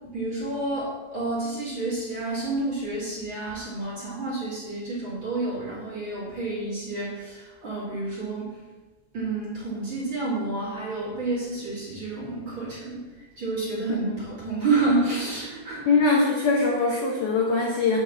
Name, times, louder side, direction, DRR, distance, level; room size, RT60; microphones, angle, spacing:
voice 1, 0.0-8.6 9.1-15.9, right 3 dB, 35° right, -8 dB, 2.6 m, -29 dB
voice 2, 15.9-18.0, left 3 dB, 75° left, -2 dB, 1.9 m, -22 dB
8.6 x 4.7 x 7.2 m, 1.2 s
omnidirectional pair, 5.2 m